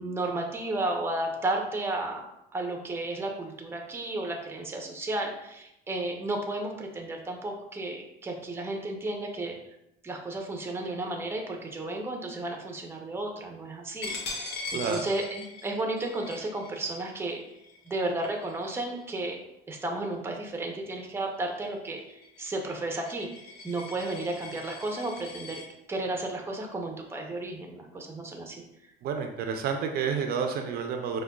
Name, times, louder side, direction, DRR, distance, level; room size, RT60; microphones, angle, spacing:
voice 1, 0.0-2.2 2.5-9.5 10.0-14.1 14.7-17.4 17.9-19.4 19.7-23.3 23.6-25.6 25.9-28.6, right 2 dB, 15° right, 2 dB, 0.5 m, -33 dB
Coin (dropping), 14.0-19.4 19.9-20.2 20.5-25.7, left 3 dB, 85° left, 0.7 m, -42 dB
voice 2, 14.7-15.0 29.0-31.2, right 6 dB, 65° right, 4 dB, 0.4 m, -30 dB
4.8 x 2.2 x 2.2 m, 0.84 s
cardioid pair, 110°, 17 cm